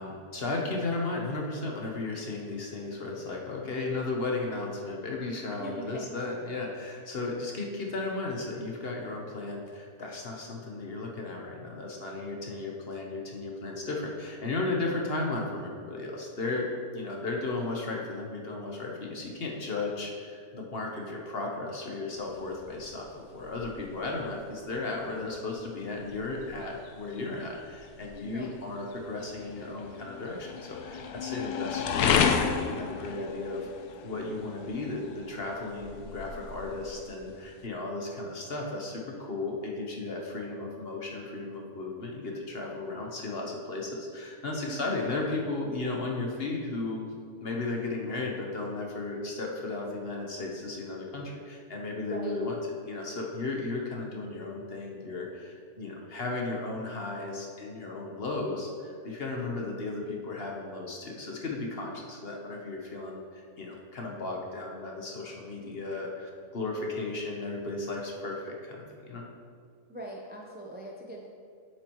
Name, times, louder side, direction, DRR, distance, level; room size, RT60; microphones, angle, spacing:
voice 1, 0.0-16.7 16.9-33.7 34.0-47.0 47.4-69.2, left 3 dB, 45° left, 0 dB, 1.0 m, -35 dB
voice 2, 5.6-6.1 28.2-28.6 44.7-44.9 52.0-52.4 69.9-71.3, right 1 dB, 15° right, -1 dB, 0.4 m, -41 dB
sound 1, 22.2-37.7, left 7 dB, 85° left, 1.1 m, -34 dB
8.9 x 7.6 x 3.0 m, 2.1 s
omnidirectional pair, 1.6 m